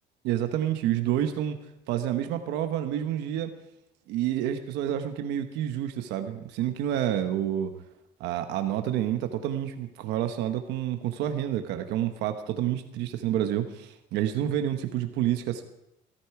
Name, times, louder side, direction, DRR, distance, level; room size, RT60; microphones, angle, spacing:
voice 1, 0.2-1.6 1.9-3.5 4.1-7.7 8.2-15.6, right 11 dB, 90° right, 7 dB, 1.1 m, -28 dB
15.0 x 13.0 x 4.8 m, 0.85 s
cardioid pair, 110°, 17 cm